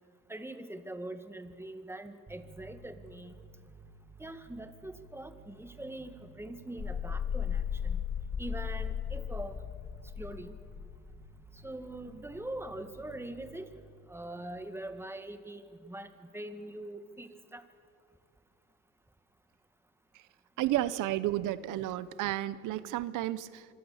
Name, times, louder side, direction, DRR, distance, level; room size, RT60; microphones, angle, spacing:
voice 1, 0.3-3.3 4.2-8.0 8.4-9.6 10.2-10.6 11.6-13.7 14.1-17.6, right 1 dB, 10° right, 8 dB, 2.0 m, -43 dB
sound 1, 2.3-15.4, right 3 dB, 30° right, 4.8 m, -55 dB
sound 2, 6.8-11.4, left 8 dB, 35° left, 1.3 m, -35 dB
voice 2, 20.6-23.7, right 14 dB, 90° right, 16 dB, 0.8 m, -32 dB
26.0 x 23.0 x 7.1 m, 2.1 s
cardioid pair, 90°, 30 cm